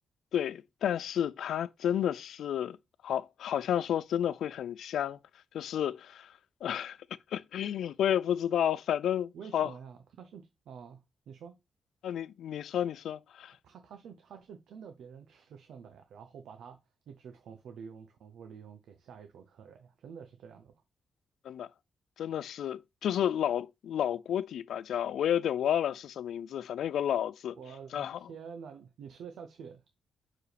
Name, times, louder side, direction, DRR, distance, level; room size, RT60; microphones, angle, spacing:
voice 1, 0.3-2.8 3.0-5.2 5.5-6.3 6.6-7.0 7.3-9.7 12.0-13.5 21.4-21.7 22.2-27.6 27.9-28.2, left 10 dB, 80° left, 0.3 m, -31 dB
voice 2, 9.3-11.6 13.6-16.8 17.1-20.7 27.6-29.8, right 6 dB, 85° right, 0.6 m, -48 dB
5.9 x 4.8 x 3.3 m
wide cardioid pair, 180°, 0 cm